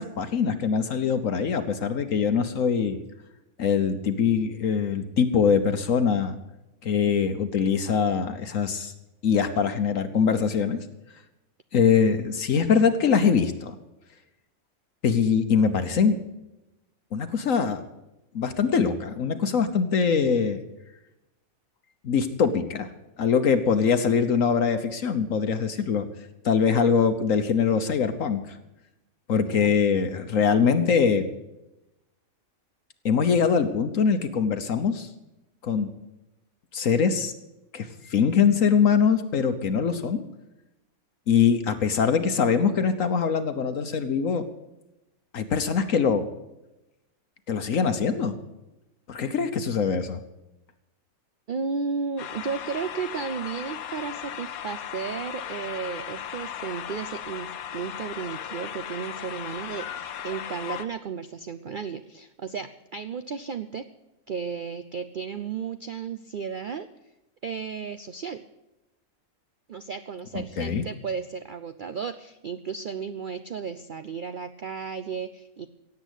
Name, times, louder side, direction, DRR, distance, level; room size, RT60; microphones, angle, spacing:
voice 1, 0.0-3.0 3.6-6.4 6.8-8.9 9.2-10.8 11.7-13.7 15.0-16.2 17.1-17.8 18.3-20.6 22.0-22.9 23.2-26.0 26.4-28.6 29.3-31.3 33.0-35.1 35.6-35.9 36.7-37.3 37.7-40.2 41.3-44.5 45.3-46.3 47.5-48.4 49.1-50.2 70.3-70.9, left 6 dB, 70° left, 8 dB, 1.4 m, -23 dB
voice 2, 51.5-63.9 64.3-66.9 67.4-68.4 69.7-75.7, right 6 dB, 50° right, 10 dB, 0.6 m, -34 dB
sound 1, 52.2-60.9, left 10 dB, 90° left, 1.3 m, -37 dB
16.5 x 8.2 x 8.2 m, 0.94 s
omnidirectional pair, 1.5 m